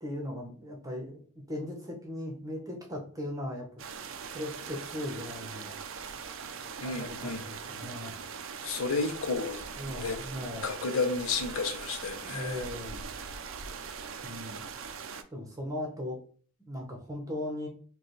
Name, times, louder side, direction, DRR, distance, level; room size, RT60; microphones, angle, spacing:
voice 1, 0.0-3.8 4.3-5.8 6.8-8.2 9.8-10.7 12.2-13.0 14.2-14.6 15.3-16.2 16.7-17.7, left 1 dB, 15° right, 0 dB, 0.9 m, -38 dB
sound 1, 3.8-15.2, right 6 dB, 60° right, 0.4 m, -41 dB
voice 2, 6.8-7.4 8.6-9.7 10.0-10.2 10.6-12.6, left 4 dB, 70° left, 4 dB, 0.6 m, -32 dB
4.8 x 2.3 x 3.2 m, 0.43 s
head